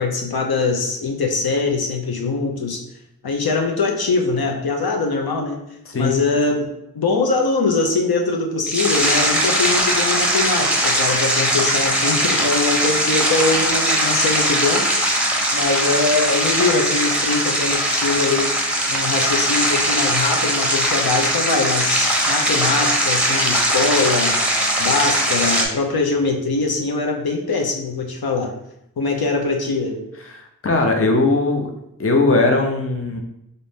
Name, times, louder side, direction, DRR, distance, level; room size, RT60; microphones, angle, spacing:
voice 1, 0.0-2.8 3.2-5.6 6.0-6.7 6.9-14.9 15.5-18.5 18.9-24.4 24.8-28.5 29.0-30.0, left 3 dB, 75° left, 2 dB, 0.7 m, -22 dB
voice 2, 5.9-6.2 30.2-31.7 32.0-33.2, left 2 dB, 40° left, 2 dB, 0.6 m, -19 dB
sound 1, 8.6-25.7, right 1 dB, 5° right, 0.7 m, -20 dB
4.0 x 2.7 x 3.5 m, 0.78 s
wide cardioid pair, 80°, 37 cm